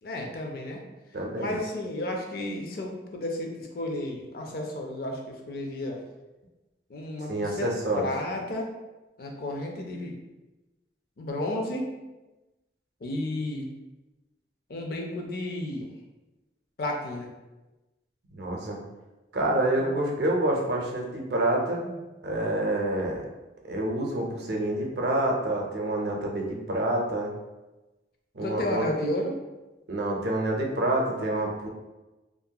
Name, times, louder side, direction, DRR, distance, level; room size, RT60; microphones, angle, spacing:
voice 1, 0.0-0.8 1.4-6.0 6.9-7.7 7.9-8.7 9.2-10.1 11.2-11.9 13.0-13.7 14.7-15.9 16.8-17.3 19.7-19.8 28.4-29.3, left 1 dB, 55° left, 2 dB, 0.4 m, -32 dB
voice 2, 1.1-1.5 7.3-8.1 18.3-18.8 19.3-23.2 23.7-27.3 28.3-28.9 29.9-31.7, right 1 dB, 65° right, -1 dB, 0.5 m, -27 dB
2.7 x 2.4 x 2.3 m, 1.1 s
head